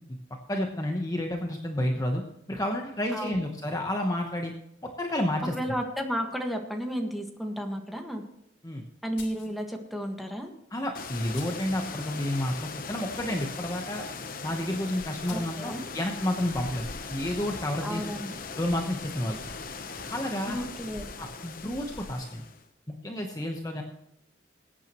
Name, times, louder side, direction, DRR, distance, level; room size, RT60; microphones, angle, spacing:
voice 1, 0.5-2.2 2.5-4.5 5.0-5.5 8.6-8.8 10.7-14.0 14.4-18.0 18.6-19.4 20.1-20.6 21.2-22.4 22.9-23.8, left 1 dB, 20° left, 2 dB, 1.0 m, -30 dB
voice 2, 5.5-8.2 9.0-10.5 15.3-15.8 17.8-18.4 20.5-21.0, equal, ahead, 2 dB, 1.5 m, -33 dB
sound 1, 9.2-9.6 10.4-10.5 11.3-11.8 15.3-15.6, left 7 dB, 75° left, 3.1 m, -47 dB
sound 2, 10.9-22.6, left 4 dB, 45° left, 0.9 m, -39 dB
21.5 x 9.0 x 3.0 m, 0.83 s
head